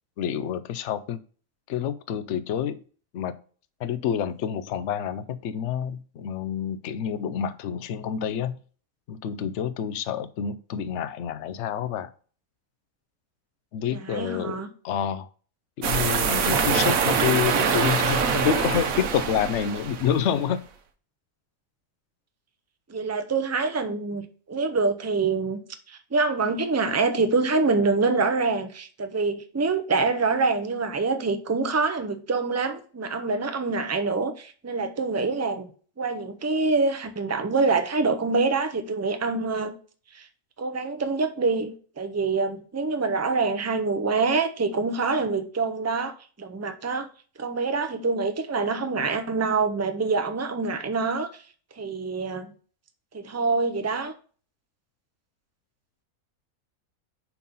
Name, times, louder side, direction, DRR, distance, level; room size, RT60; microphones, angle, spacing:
voice 1, 0.2-1.2 1.7-2.8 3.1-3.3 3.8-8.6 9.1-12.1 13.7-15.3 15.8-20.6, left 9 dB, 60° left, 0.8 m, -28 dB
voice 2, 13.8-14.7 22.9-25.6 25.9-35.7 36.0-39.7 40.1-40.3 40.6-47.1 47.4-51.4 51.8-52.5 53.1-54.1, right 4 dB, 20° right, 0.4 m, -25 dB
sound 1, 15.8-20.3, right 6 dB, 70° right, 1.3 m, -24 dB
5.4 x 4.7 x 5.4 m
omnidirectional pair, 1.6 m